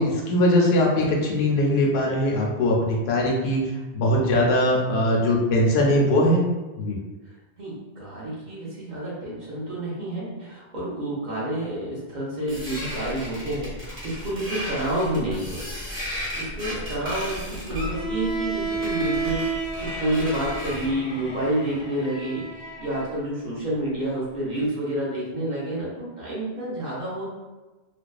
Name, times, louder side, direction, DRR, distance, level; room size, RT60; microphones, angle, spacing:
voice 1, 0.0-3.6 3.9-6.4 6.8-7.0, left 1 dB, 75° left, -2 dB, 0.8 m, -21 dB
voice 2, 7.2-15.9 16.3-27.3, right 1 dB, 50° right, -7 dB, 0.8 m, -29 dB
sound 1, 12.5-21.0, equal, 10° right, 0.9 m, -35 dB
Bowed string instrument, 17.9-23.1, right 3 dB, 35° left, 0.4 m, -31 dB
2.5 x 2.2 x 2.3 m, 1.2 s
omnidirectional pair, 1.1 m